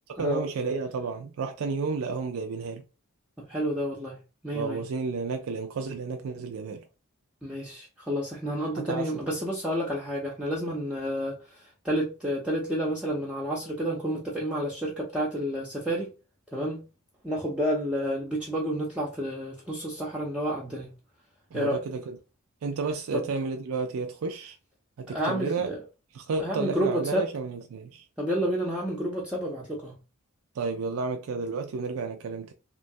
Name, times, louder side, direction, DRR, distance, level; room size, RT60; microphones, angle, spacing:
voice 1, 0.1-2.8 4.5-6.8 8.8-9.1 21.5-22.2 22.6-24.6 25.0-25.7 26.1-28.0 30.5-32.5, right 4 dB, 75° right, 0.4 m, -31 dB
voice 2, 3.4-4.2 4.4-4.8 7.4-16.1 16.5-16.8 17.2-20.9 21.5-21.8 23.1-23.3 25.1-25.8 26.4-27.3 28.2-30.0, equal, 5° right, 0.5 m, -30 dB
3.0 x 2.2 x 2.6 m
head